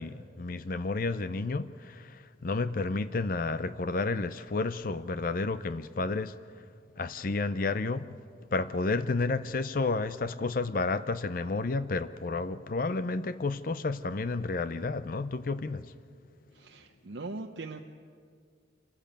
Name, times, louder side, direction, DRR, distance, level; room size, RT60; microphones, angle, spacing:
voice 1, 0.0-6.3 7.0-8.2 8.5-15.9, left 3 dB, 50° left, 0.5 m, -31 dB
voice 2, 16.5-17.8, right 3 dB, 70° right, 0.8 m, -40 dB
27.0 x 13.5 x 8.8 m
head